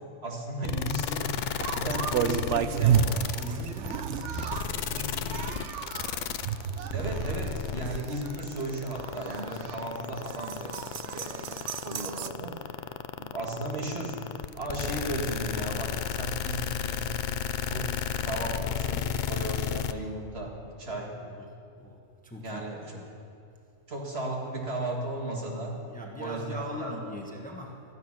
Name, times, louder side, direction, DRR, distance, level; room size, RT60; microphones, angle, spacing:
voice 1, 0.0-3.3 6.9-10.8 11.1-12.7 13.2-17.2 17.6-17.9 18.2-21.2 22.4-23.0 23.9-25.8 26.2-27.0, right 1 dB, 50° right, -1 dB, 2.2 m, -35 dB
sound 1, 0.6-19.9, left 8 dB, 85° left, 0.4 m, -32 dB
sound 2, 1.6-12.3, right 8 dB, 65° right, 0.9 m, -31 dB
voice 2, 1.7-2.0 3.4-5.8 10.9-11.6 20.9-21.5 21.8-22.7 22.9-23.1 25.9-27.8, left 1 dB, 5° left, 0 dB, 1.3 m, -42 dB
16.0 x 13.0 x 6.1 m, 2.4 s
omnidirectional pair, 1.4 m